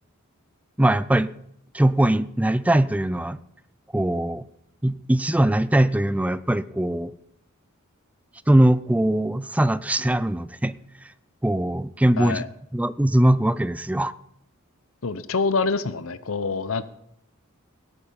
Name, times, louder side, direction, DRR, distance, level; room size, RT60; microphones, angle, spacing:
voice 1, 0.8-1.3 1.7-3.4 3.9-4.4 4.8-7.1 8.5-10.8 11.4-12.4 12.7-14.1, right 1 dB, 5° right, 16 dB, 0.4 m, -21 dB
voice 2, 15.0-16.8, left 4 dB, 70° left, 14 dB, 0.8 m, -26 dB
17.5 x 8.7 x 5.6 m, 0.76 s
head